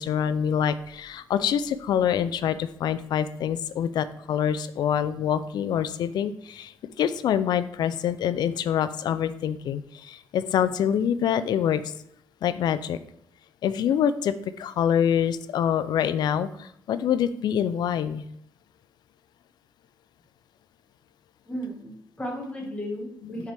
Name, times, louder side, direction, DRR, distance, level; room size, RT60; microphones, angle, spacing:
voice 1, 0.0-11.9 12.4-13.0 13.6-18.2 23.2-23.3, left 9 dB, 85° left, 13 dB, 0.3 m, -26 dB
voice 2, 21.4-23.5, equal, 15° left, -1 dB, 1.6 m, -34 dB
6.5 x 4.7 x 3.4 m, 0.72 s
wide cardioid pair, 125°, 7 cm